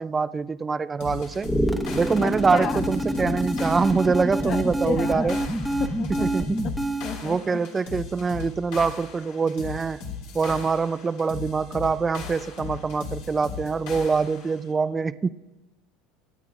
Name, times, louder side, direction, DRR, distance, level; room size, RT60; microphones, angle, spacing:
voice 1, 0.0-1.5 1.9-5.4 6.2-6.6 7.2-10.0 10.3-15.3, right 5 dB, 25° right, 16 dB, 0.4 m, -24 dB
sound 1, 1.0-14.6, left 5 dB, 75° left, 2.8 m, -38 dB
sound 2, 1.4-7.2, right 1 dB, ahead, 1.1 m, -27 dB
voice 2, 2.2-2.8 4.4-5.5 5.8-6.5 6.8-7.6, left 7 dB, 45° left, 8 dB, 1.0 m, -33 dB
23.5 x 9.0 x 2.4 m, 1.1 s
supercardioid pair, 100°, 0 cm